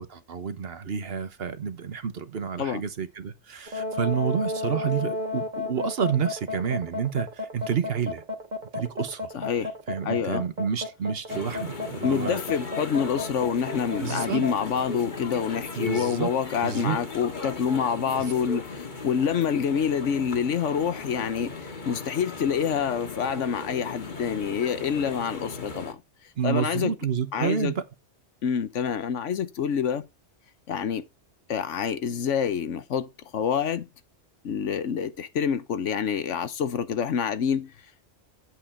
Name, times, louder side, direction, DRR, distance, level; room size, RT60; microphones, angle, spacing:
voice 1, 0.0-8.2 8.7-9.3 9.9-12.4 14.0-14.4 15.7-16.3 16.6-17.0 26.4-27.8, right 7 dB, 55° right, 1.2 m, -29 dB
sound 1, 3.7-14.5, left 3 dB, 40° right, 1.4 m, -32 dB
voice 2, 9.3-9.7 10.0-10.4 12.0-26.0 26.4-26.9 27.3-27.7 28.4-30.1 30.7-31.1 31.5-33.9 34.4-37.7, left 7 dB, 85° left, 1.3 m, -27 dB
sound 2, 11.3-25.9, left 3 dB, 40° left, 1.7 m, -37 dB
8.7 x 8.1 x 4.4 m
omnidirectional pair, 1.2 m